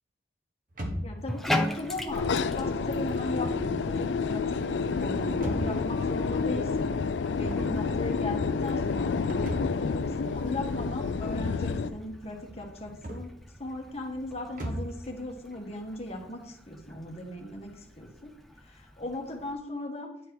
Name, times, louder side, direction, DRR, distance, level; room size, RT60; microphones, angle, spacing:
sound 1, 0.7-15.0, equal, 45° right, 1.4 m, -41 dB
voice 1, 1.0-4.6 5.0-7.0 7.4-13.3 13.6-18.3 18.6-20.1, left 1 dB, 35° left, 1 dB, 1.5 m, -37 dB
Bathtub (filling or washing), 1.2-19.5, left 1 dB, ahead, 0.6 m, -41 dB
sound 2, 2.1-11.9, left 4 dB, 75° left, 0.4 m, -29 dB
9.9 x 4.5 x 4.7 m, 0.75 s
head